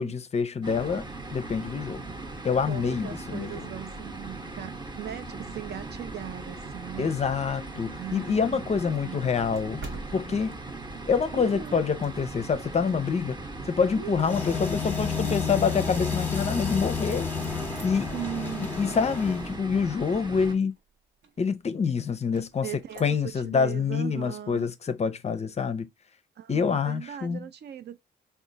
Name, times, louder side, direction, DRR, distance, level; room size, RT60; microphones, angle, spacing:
voice 1, 0.0-2.0 2.4-3.5 7.0-9.8 10.1-10.5 11.1-17.3 17.8-18.1 18.8-20.7 21.4-22.7 23.0-25.9 26.5-27.5, left 6 dB, 35° left, 0.5 m, -26 dB
sound 1, 0.6-20.5, right 2 dB, 25° right, 0.8 m, -39 dB
voice 2, 2.7-7.2 8.0-8.6 9.0-9.3 11.3-12.0 14.0-14.4 15.2-15.7 18.1-18.7 22.6-24.7 26.4-28.0, right 11 dB, 55° right, 0.5 m, -39 dB
sound 2, 9.3-12.5 13.0-17.2 17.5-23.4, right 2 dB, 85° right, 1.2 m, -50 dB
sound 3, 14.2-19.5, left 6 dB, 10° left, 0.9 m, -31 dB
3.6 x 2.4 x 3.9 m
cardioid pair, 90°, 20 cm